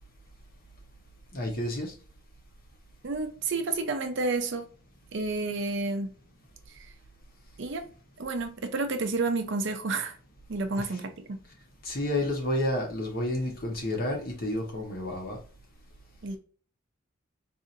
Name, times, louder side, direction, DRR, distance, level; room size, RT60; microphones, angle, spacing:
voice 1, 1.3-2.0 10.7-11.0 11.4-11.5 11.8-15.4, left 1 dB, 45° left, 1.1 m, -30 dB
voice 2, 3.0-4.6 5.1-6.1 6.7-6.9 7.6-7.8 8.2-10.2 10.5-11.4 16.2-16.4, right 3 dB, 60° right, 0.6 m, -30 dB
4.2 x 2.7 x 2.5 m
head